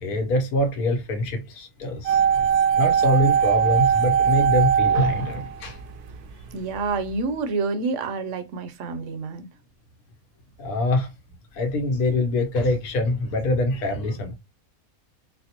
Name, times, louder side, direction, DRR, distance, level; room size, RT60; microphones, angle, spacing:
voice 1, 0.0-2.2 2.8-5.8 10.6-11.1 11.5-14.4, left 1 dB, 80° left, 1.2 m, -24 dB
sound 1, 2.1-6.2 6.4-6.5, right 8 dB, 90° right, 1.2 m, -20 dB
voice 2, 6.5-9.5, right 4 dB, 65° right, 0.9 m, -28 dB
4.3 x 2.0 x 2.8 m
omnidirectional pair, 1.6 m